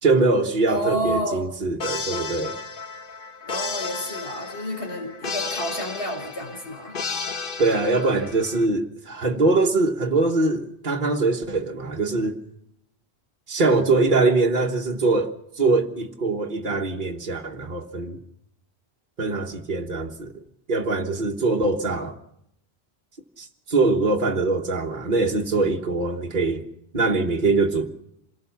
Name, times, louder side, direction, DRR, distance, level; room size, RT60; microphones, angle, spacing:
voice 1, 0.0-2.5 7.6-12.4 13.5-18.2 19.2-20.3 20.7-22.1 23.4-26.7 26.9-27.9, right 3 dB, 50° right, 1.6 m, -23 dB
voice 2, 0.7-1.5 3.5-6.9, equal, 85° left, 4.9 m, -30 dB
sound 1, 1.8-8.7, left 4 dB, 60° left, 1.2 m, -33 dB
27.5 x 18.0 x 7.1 m
omnidirectional pair, 1.1 m